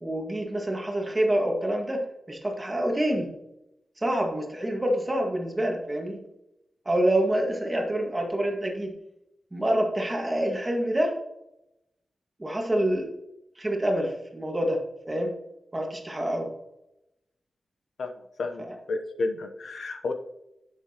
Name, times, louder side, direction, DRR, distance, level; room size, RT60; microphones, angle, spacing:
voice 1, 0.0-3.3 4.0-6.2 6.9-8.9 9.5-11.1 12.4-13.1 13.6-14.8 15.1-15.3 15.7-16.5 18.7-18.8, right 1 dB, 15° right, 1 dB, 1.8 m, -27 dB
voice 2, 18.4-20.1, left 3 dB, 70° left, 6 dB, 0.8 m, -31 dB
11.0 x 7.3 x 2.9 m, 0.87 s
wide cardioid pair, 155°, 0 cm